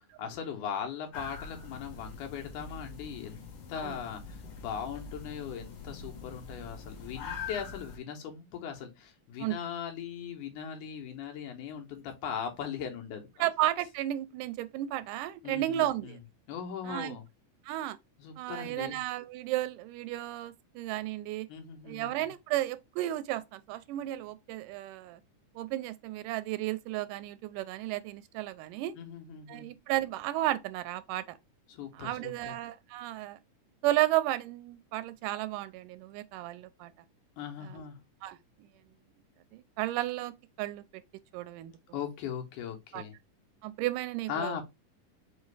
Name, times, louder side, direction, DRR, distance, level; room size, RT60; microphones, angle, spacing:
voice 1, 0.2-3.4 3.7-13.5 15.4-16.2 16.5-17.2 18.2-19.0 21.5-22.3 29.0-29.7 31.7-32.5 37.4-38.0 41.9-43.1 44.3-44.6, left 8 dB, 80° left, 2.4 m, -39 dB
sound 1, 1.1-8.0, left 5 dB, 60° left, 1.6 m, -44 dB
voice 2, 13.4-16.2 16.8-17.2 17.7-18.0 18.4-21.5 21.8-25.2 25.6-28.9 29.5-31.4 31.9-33.4 33.8-36.9 37.6-37.8 38.2-38.4 39.5-40.3 40.6-41.0 41.3-41.7 42.9-43.0 43.6-44.6, right 15 dB, 85° right, 2.1 m, -33 dB
5.6 x 2.5 x 3.2 m
omnidirectional pair, 3.6 m